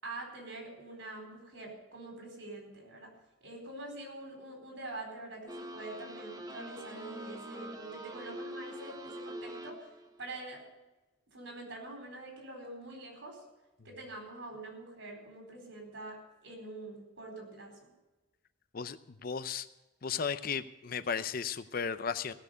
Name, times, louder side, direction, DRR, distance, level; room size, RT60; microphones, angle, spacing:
voice 1, 0.0-3.1 3.4-9.9 10.2-10.6 11.3-13.4 13.8-17.9, right 2 dB, 75° right, 2 dB, 4.3 m, -45 dB
sound 1, 5.5-10.1, right 1 dB, 20° right, 0.9 m, -44 dB
voice 2, 18.7-19.7 20.0-22.3, left 6 dB, 50° left, 13 dB, 0.5 m, -35 dB
16.5 x 6.8 x 8.1 m, 1.1 s
head